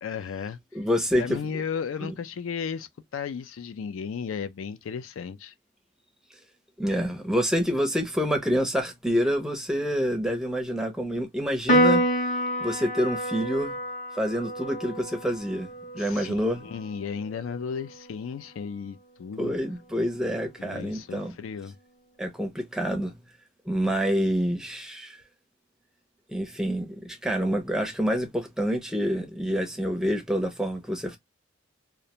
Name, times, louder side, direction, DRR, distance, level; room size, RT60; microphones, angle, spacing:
voice 1, 0.0-0.6 1.1-5.5 16.0-19.5 20.6-21.8, left 6 dB, 80° left, 0.4 m, -34 dB
voice 2, 0.7-1.4 2.0-2.1 6.8-12.0 12.6-13.7 14.1-15.7 15.9-16.6 19.4-21.3 22.2-23.1 23.7-25.2 26.3-31.2, equal, 5° right, 0.5 m, -27 dB
Piano, 11.7-18.4, equal, 40° left, 0.6 m, -28 dB
2.4 x 2.1 x 2.8 m
head